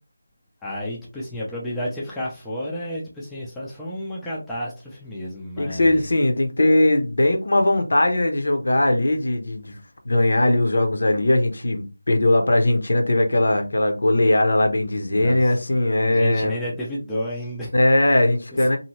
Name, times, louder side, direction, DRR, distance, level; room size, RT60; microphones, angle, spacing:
voice 1, 0.6-6.1 15.1-15.6 16.1-17.7, equal, 5° left, 0.5 m, -31 dB
voice 2, 5.6-9.8 10.0-16.6 17.7-18.8, left 1 dB, 60° left, 0.7 m, -19 dB
2.8 x 2.6 x 2.9 m
figure-of-eight pair, 170°, 0 cm